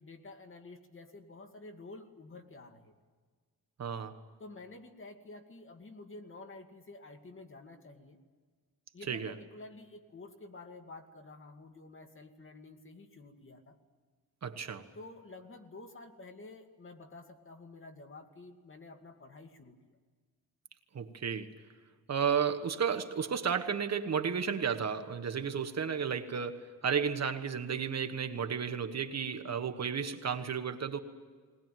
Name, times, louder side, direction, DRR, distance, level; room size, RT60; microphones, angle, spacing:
voice 1, 0.0-2.9 4.4-8.2 8.9-13.8 14.9-19.8, left 2 dB, 35° left, 5 dB, 2.2 m, -50 dB
voice 2, 3.8-4.1 9.1-9.3 14.4-14.8 20.9-21.5 22.1-31.0, right 7 dB, 45° right, 8 dB, 1.4 m, -33 dB
21.5 x 20.0 x 9.2 m, 1.5 s
wide cardioid pair, 135°, 36 cm